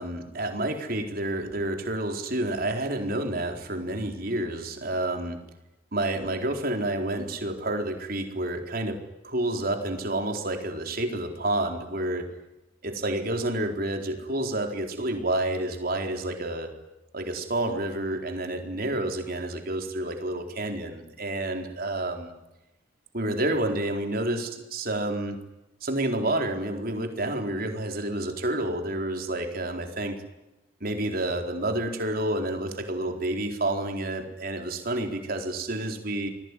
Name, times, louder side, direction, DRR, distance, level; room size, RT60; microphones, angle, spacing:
voice 1, 0.0-5.4 5.9-9.0 9.2-12.3 12.8-16.7 17.1-22.3 23.1-25.4 25.8-30.2 30.8-36.3, right 1 dB, 45° right, 4 dB, 4.1 m, -29 dB
28.5 x 21.0 x 9.8 m, 0.96 s
head